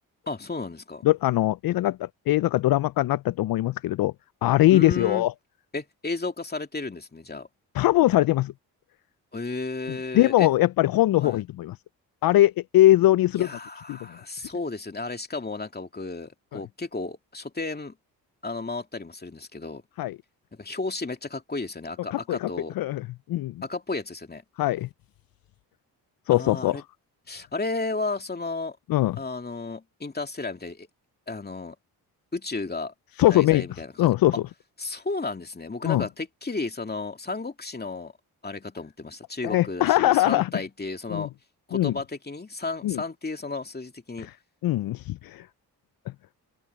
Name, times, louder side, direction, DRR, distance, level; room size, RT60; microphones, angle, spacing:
voice 1, 0.3-1.1 4.7-5.3 5.7-7.5 9.3-10.5 11.2-11.4 13.4-17.9 18.4-19.8 20.6-22.7 23.6-24.4 26.3-26.8 27.3-28.8 29.2-30.9 31.3-31.8 32.3-32.9 33.3-34.1 34.8-38.1 38.4-41.3 41.7-44.3, left 3 dB, 25° left, 2.6 m, -33 dB
voice 2, 1.0-4.1 4.4-5.3 7.7-8.5 10.1-11.7 12.2-13.5 13.9-14.0 16.5-16.6 20.0-20.2 22.1-22.5 22.8-23.6 24.6-24.9 26.3-26.8 28.9-29.2 33.2-33.6 34.0-34.3 35.8-36.0 39.4-40.5 41.1-41.3 41.7-41.9 42.8-43.0 44.2-44.3 44.6-45.5, left 15 dB, 65° left, 0.5 m, -21 dB
cardioid pair, 60°, 38 cm